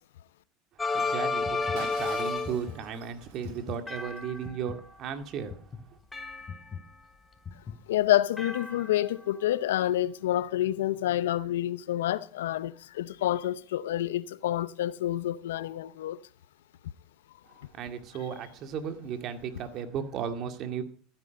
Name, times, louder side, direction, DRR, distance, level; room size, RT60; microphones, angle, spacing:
sound 1, 0.8-2.7 3.9-4.7 6.1-7.1 8.4-9.2, left 3 dB, 15° left, 2.2 m, -32 dB
voice 1, 0.9-5.6 17.7-20.8, right 7 dB, 50° right, 2.1 m, -35 dB
sound 2, 1.4-8.2, left 6 dB, 30° left, 2.7 m, -44 dB
Shatter, 1.8-4.4, right 4 dB, 75° right, 5.2 m, -49 dB
voice 2, 7.9-16.2, left 13 dB, 80° left, 0.6 m, -28 dB
14.5 x 9.7 x 5.3 m
hypercardioid pair, 90°, 0 cm